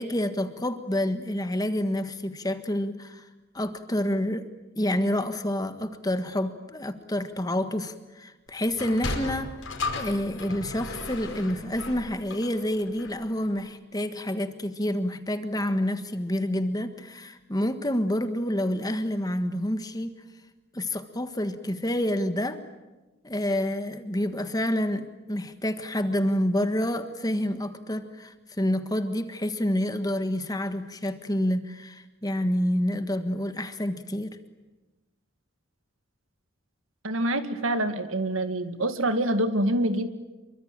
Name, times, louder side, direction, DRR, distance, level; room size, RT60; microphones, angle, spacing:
voice 1, 0.0-3.3 3.5-4.5 4.8-9.6 9.9-20.1 20.7-22.6 23.2-34.4, left 1 dB, 20° left, 9 dB, 1.5 m, -28 dB
Sliding door, 8.7-13.3, left 3 dB, 75° left, 5.3 m, -35 dB
voice 2, 37.0-40.1, right 1 dB, 80° right, 9 dB, 2.1 m, -26 dB
27.0 x 24.0 x 8.9 m, 1.1 s
head